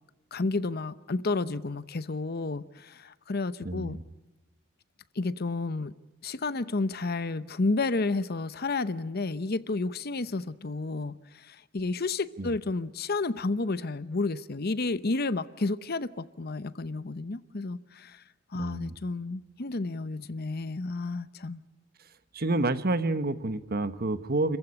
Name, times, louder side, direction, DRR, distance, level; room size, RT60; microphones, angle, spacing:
voice 1, 0.3-4.0 5.2-5.9 6.2-18.2 18.5-21.6, left 3 dB, 50° left, 15 dB, 0.8 m, -31 dB
voice 2, 3.6-4.0 12.4-12.5 18.5-19.0 22.3-24.6, right 2 dB, 50° right, 12 dB, 1.1 m, -29 dB
29.5 x 15.0 x 9.9 m, 1.0 s
head